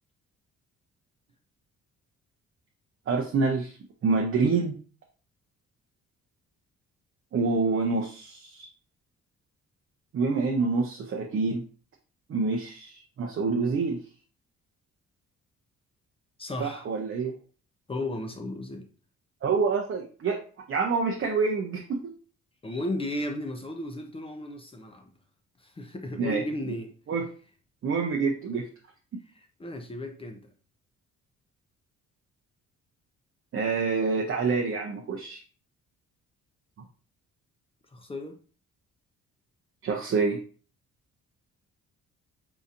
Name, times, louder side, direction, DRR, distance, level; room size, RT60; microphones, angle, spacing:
voice 1, 3.1-3.8 4.0-4.8 7.3-8.7 10.1-11.6 12.3-14.0 16.6-17.3 19.4-20.4 20.7-22.1 26.2-26.4 27.1-27.3 27.8-28.7 29.1-29.2 33.5-35.4 36.8-36.9 39.8-40.4, right 4 dB, 45° right, 0.6 m, -27 dB
voice 2, 16.4-16.9 17.9-18.9 22.6-25.1 25.6-26.9 28.5-28.6 29.3-30.5 37.9-38.4, left 1 dB, 20° left, 0.6 m, -35 dB
3.9 x 2.6 x 2.5 m
cardioid pair, 90°, 30 cm